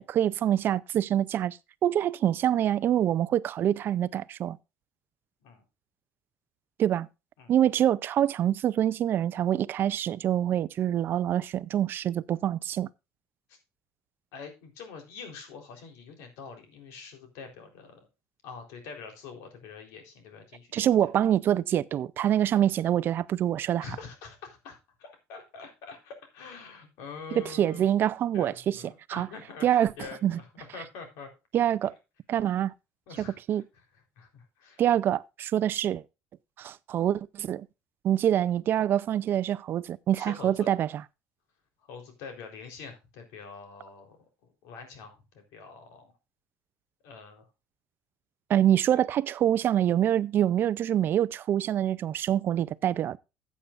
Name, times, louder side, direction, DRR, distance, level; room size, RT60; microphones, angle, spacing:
voice 1, 0.0-1.6 1.8-4.6 6.8-7.1 7.5-12.9 20.7-23.8 27.3-28.8 29.1-29.3 29.6-29.9 30.2-30.4 31.5-31.9 32.3-32.7 33.2-33.6 34.8-36.0 36.6-37.7 38.0-41.0 48.5-53.2, right 11 dB, 45° right, 0.5 m, -25 dB
voice 2, 14.3-18.0 18.4-20.8 23.8-27.9 28.3-29.7 30.0-30.5 30.7-31.3 33.1-33.6 34.2-34.8 40.2-40.7 41.8-44.2 44.4-46.1 47.0-47.5 48.9-49.0, left 5 dB, 85° left, 3.9 m, -45 dB
14.5 x 8.4 x 2.5 m
cardioid pair, 140°, 5 cm